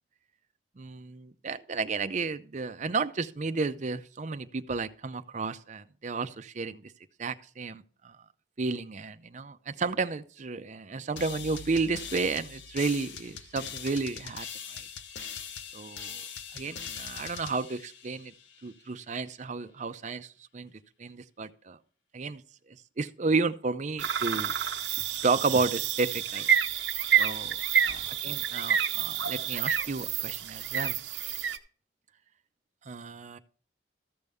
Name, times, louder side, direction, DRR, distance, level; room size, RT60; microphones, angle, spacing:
voice 1, 0.8-6.9 7.2-8.2 8.6-14.5 14.7-14.8 15.7-16.2 16.5-18.3 18.6-20.7 21.0-21.8 22.1-22.4 22.7-24.5 25.1-26.6 27.2-31.0 32.9-33.4, right 4 dB, 45° right, 0.6 m, -32 dB
sound 1, 11.2-18.7, left 7 dB, 90° left, 0.7 m, -41 dB
sound 2, 24.0-31.6, right 9 dB, 80° right, 0.7 m, -28 dB
14.0 x 6.7 x 3.5 m
head